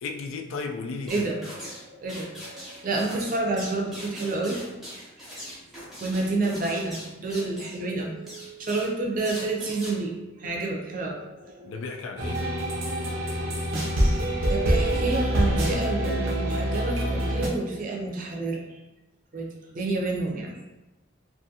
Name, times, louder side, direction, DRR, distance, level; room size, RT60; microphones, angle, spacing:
voice 1, 0.0-1.3 11.6-12.4, left 4 dB, 80° left, 4 dB, 0.3 m, -34 dB
sound 1, 1.1-1.8 2.1-7.8 8.3-8.9 9.2-9.9, equal, ahead, 0.6 m, -41 dB
voice 2, 1.1-4.6 5.7-11.8 14.5-18.6 19.3-20.6, right 2 dB, 40° right, 0 dB, 0.4 m, -29 dB
sound 2, 12.2-17.5, right 1 dB, 85° right, 0.6 m, -25 dB
2.6 x 2.3 x 2.7 m, 1.1 s
head